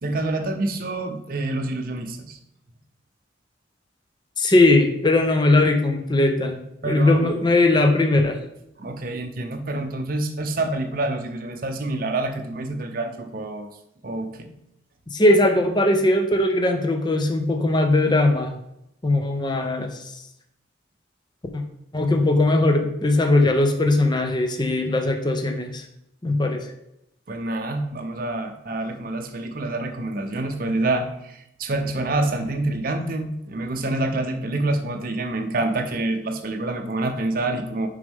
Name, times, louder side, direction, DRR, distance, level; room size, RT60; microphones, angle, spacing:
voice 1, 0.0-2.4 6.8-7.3 8.8-13.7 14.0-14.5 27.3-37.9, right 2 dB, 50° right, 5 dB, 0.7 m, -27 dB
voice 2, 4.4-8.4 15.1-18.6 19.0-20.0 21.5-21.6 21.9-25.8 26.2-26.6, left 2 dB, 25° left, 5 dB, 0.6 m, -19 dB
6.4 x 5.2 x 3.5 m, 0.81 s
head